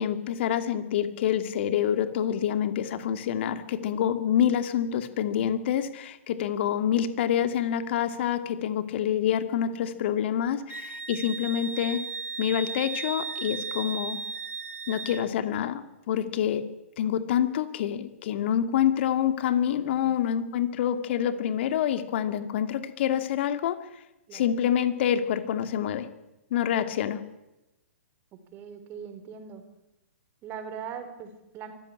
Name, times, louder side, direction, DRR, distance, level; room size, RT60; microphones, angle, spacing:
voice 1, 0.0-12.0 12.4-14.2 14.9-16.6 17.0-23.8 24.3-26.1 26.5-27.2, left 9 dB, 50° left, 10 dB, 2.5 m, -27 dB
Wind instrument woodwind instrument, 10.7-15.3, right 5 dB, 90° right, 1.4 m, -36 dB
voice 2, 28.5-29.6 30.4-31.7, right 7 dB, 30° right, 8 dB, 4.4 m, -40 dB
24.5 x 15.0 x 10.0 m, 0.95 s
figure-of-eight pair, 120°, 8 cm